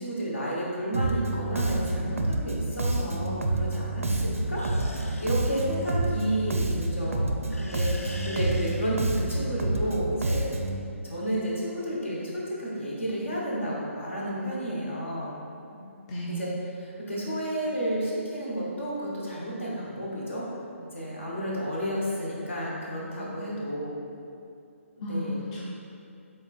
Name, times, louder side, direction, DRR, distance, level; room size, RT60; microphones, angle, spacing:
voice 1, 0.0-4.6 4.9-10.5 11.0-15.4 16.3-16.5 16.8-20.4 20.9-24.0 25.0-25.4, equal, 60° left, -5 dB, 1.1 m, -31 dB
Bass guitar, 0.9-10.8, right 2 dB, 75° right, 0.4 m, -28 dB
sound 1, 4.6-7.1 7.5-9.3, left 2 dB, 85° left, 0.5 m, -44 dB
voice 2, 15.7-16.4 25.0-25.6, equal, 25° left, -8 dB, 0.7 m, -34 dB
4.7 x 3.8 x 2.4 m, 2.6 s
figure-of-eight pair, 140°, 7 cm